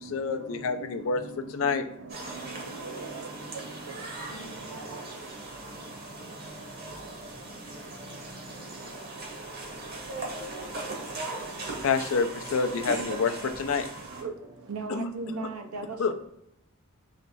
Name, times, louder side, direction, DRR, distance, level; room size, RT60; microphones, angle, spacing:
voice 1, 0.0-1.2 1.5-1.8 11.8-13.9 14.9-15.1 16.0-16.1, left 5 dB, 65° left, 0.4 m, -27 dB
sound 1, 2.1-14.2, right 2 dB, 45° right, 1.0 m, -39 dB
voice 2, 2.4-3.3 4.7-5.0 14.2-14.3 14.7-16.1, right 4 dB, 80° right, 0.6 m, -38 dB
voice 3, 6.5-7.0 7.2-7.4 7.7-8.6 8.9-9.3 9.6-11.1 11.4-11.8, left 3 dB, 15° right, 0.5 m, -52 dB
3.3 x 3.1 x 4.0 m
head